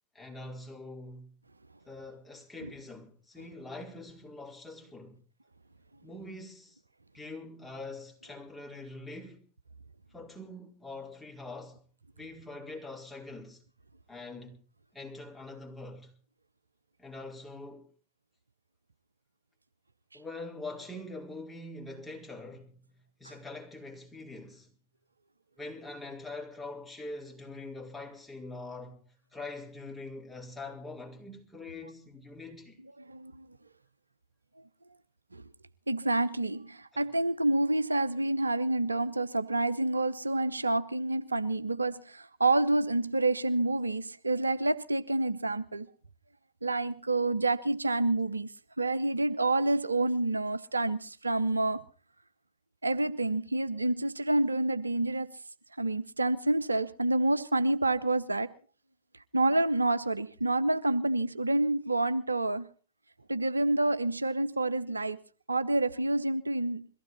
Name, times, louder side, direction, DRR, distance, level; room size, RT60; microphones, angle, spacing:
voice 1, 0.1-1.3 1.8-5.2 6.0-6.8 7.1-9.4 10.1-11.8 12.2-13.6 14.1-14.6 14.9-16.1 17.0-17.9 20.1-22.7 23.2-24.7 25.6-29.0 29.3-32.8 36.9-37.1, left 2 dB, 10° left, 4.6 m, -44 dB
voice 2, 33.0-33.5 35.3-35.4 35.9-45.9 46.6-48.5 48.8-51.8 52.8-55.3 55.8-58.5 59.3-62.7 63.3-65.2 65.5-66.9, right 2 dB, 80° right, 0.7 m, -28 dB
22.5 x 15.5 x 4.2 m
figure-of-eight pair, 90°, 0 cm